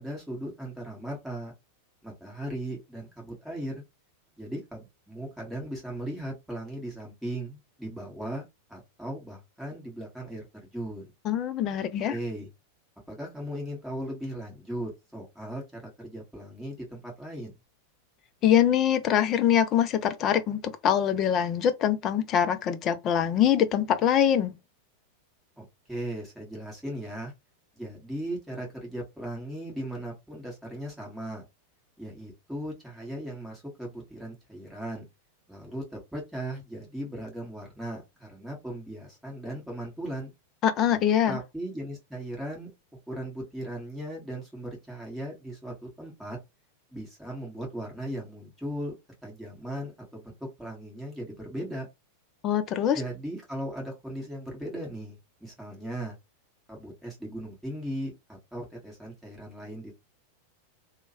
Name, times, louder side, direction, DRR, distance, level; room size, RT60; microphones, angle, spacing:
voice 1, 0.0-1.5 2.0-3.8 4.4-8.4 8.7-11.1 12.1-12.5 13.1-17.6 25.6-27.3 27.7-31.4 32.0-35.0 35.5-40.3 41.3-42.7 43.1-46.4 46.9-48.9 49.2-51.9 52.9-56.2 56.7-59.9, right 1 dB, 5° right, 1.5 m, -37 dB
voice 2, 11.3-12.1 18.4-24.5 40.6-41.4 52.4-53.0, left 9 dB, 35° left, 0.4 m, -24 dB
3.0 x 2.1 x 2.8 m
figure-of-eight pair, 90°, 0 cm